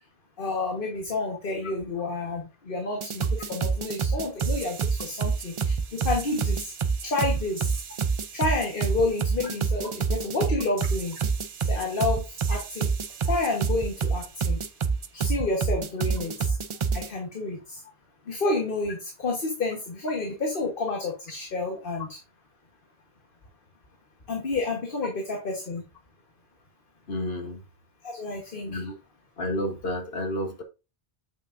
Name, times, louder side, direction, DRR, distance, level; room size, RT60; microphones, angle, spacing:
voice 1, 0.4-6.7 7.0-7.7 8.3-11.2 11.7-12.9 13.3-14.6 15.1-16.6 16.9-17.8 18.3-22.2 24.3-25.8 28.0-28.9, left 3 dB, 60° left, 1.5 m, -30 dB
sound 1, 3.0-17.1, right 5 dB, 45° right, 0.4 m, -27 dB
voice 2, 27.1-27.6 28.7-28.9 29.4-30.6, left 1 dB, 75° left, 1.5 m, -30 dB
8.2 x 5.9 x 2.6 m
omnidirectional pair, 1.0 m